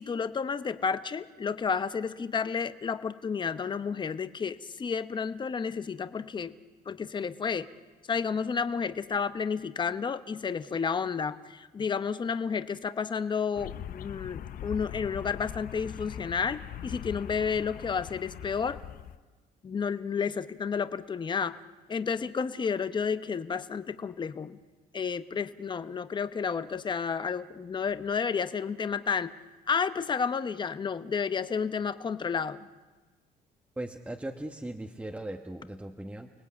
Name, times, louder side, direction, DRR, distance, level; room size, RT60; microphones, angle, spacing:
voice 1, 0.0-6.5 6.9-7.7 8.1-18.8 19.6-21.6 21.9-24.6 24.9-29.3 29.7-32.6, left 6 dB, 25° left, 12 dB, 0.9 m, -31 dB
sound 1, 13.6-19.2, left 10 dB, 60° left, 0.8 m, -41 dB
voice 2, 33.8-36.3, right 1 dB, 10° right, 3 dB, 1.2 m, -38 dB
29.5 x 19.0 x 8.6 m, 1.3 s
cardioid pair, 110°, 17 cm